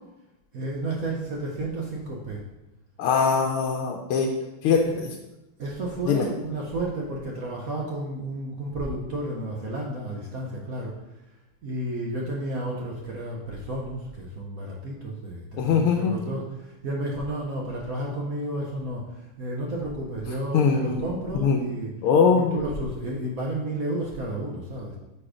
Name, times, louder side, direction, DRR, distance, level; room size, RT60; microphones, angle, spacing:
voice 1, 0.5-2.4 4.7-4.9 5.6-10.9 11.6-21.9 22.3-25.0, right 1 dB, 65° right, -3 dB, 0.9 m, -32 dB
voice 2, 3.0-4.3 4.6-4.8 6.0-6.3 15.6-16.2 20.5-21.0 21.4-21.6 22.0-22.6, left 6 dB, 80° left, 2 dB, 1.5 m, -21 dB
5.2 x 4.2 x 4.9 m, 0.97 s
omnidirectional pair, 2.4 m